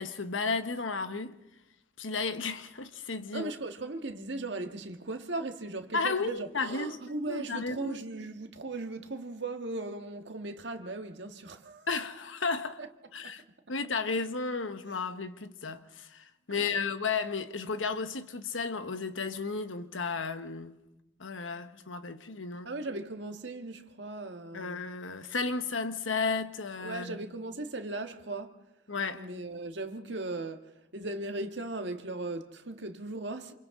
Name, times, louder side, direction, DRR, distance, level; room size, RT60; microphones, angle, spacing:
voice 1, 0.0-1.4 2.0-3.5 5.9-7.0 7.3-8.0 11.9-12.8 13.1-13.4 13.7-20.8 21.2-22.7 24.5-27.2 28.9-29.3, left 4 dB, 85° left, 1.2 m, -33 dB
voice 2, 3.3-11.9 12.8-12.9 13.2-13.4 16.5-16.8 22.6-24.8 26.8-28.6 29.1-33.5, right 2 dB, 65° right, 1.6 m, -38 dB
28.0 x 28.0 x 3.8 m
head